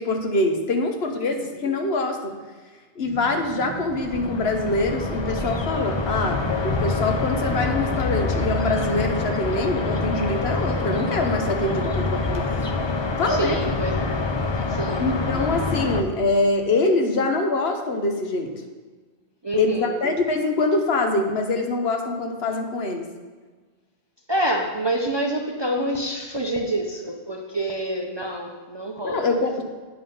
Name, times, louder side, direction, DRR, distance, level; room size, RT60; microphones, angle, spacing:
voice 1, 0.0-2.4 3.0-12.6 13.2-13.6 15.0-18.5 19.5-23.1 29.0-29.6, left 2 dB, 60° left, 4 dB, 1.1 m, -24 dB
sound 1, 3.0-13.7 14.0-14.4 14.7-14.9, right 4 dB, 10° left, 1.6 m, -43 dB
sound 2, 3.9-16.0, left 3 dB, 35° left, 0.5 m, -26 dB
voice 2, 13.3-14.2 14.7-15.1 19.4-19.9 24.3-29.3, right 1 dB, 30° right, 1 dB, 0.6 m, -27 dB
9.1 x 5.5 x 5.5 m, 1.4 s
omnidirectional pair, 1.2 m